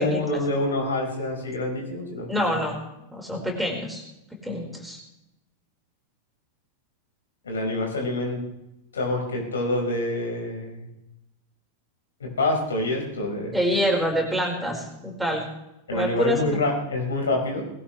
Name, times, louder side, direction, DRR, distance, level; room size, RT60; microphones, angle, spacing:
voice 1, 0.0-2.3 7.4-8.4 8.9-10.8 12.2-13.6 15.9-17.6, left 2 dB, 70° left, 2 dB, 4.9 m, -26 dB
voice 2, 2.3-2.8 3.1-4.0 4.4-5.0 13.5-15.4 15.9-16.4, equal, 5° right, 0 dB, 4.9 m, -26 dB
21.0 x 17.0 x 3.3 m, 0.91 s
figure-of-eight pair, 90°, 0 cm